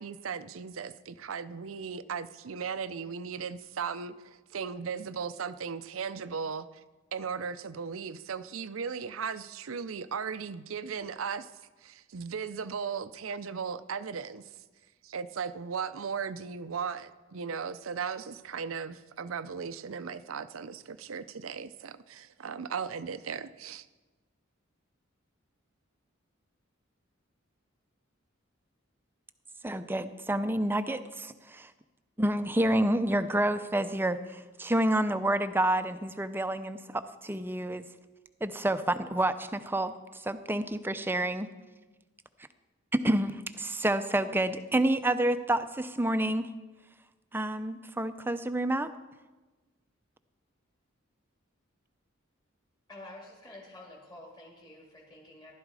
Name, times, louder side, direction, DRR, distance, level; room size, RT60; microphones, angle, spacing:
voice 1, 0.0-6.7 7.1-11.5 11.8-14.4 15.0-23.9, right 6 dB, 85° right, 13 dB, 0.6 m, -37 dB
voice 2, 29.6-31.7 32.2-37.9 38.4-41.5 42.9-46.5 47.3-48.9, right 1 dB, 10° right, 11 dB, 0.5 m, -29 dB
voice 3, 52.9-55.5, left 1 dB, 20° left, -3 dB, 2.1 m, -49 dB
15.0 x 12.0 x 4.8 m, 1.2 s
head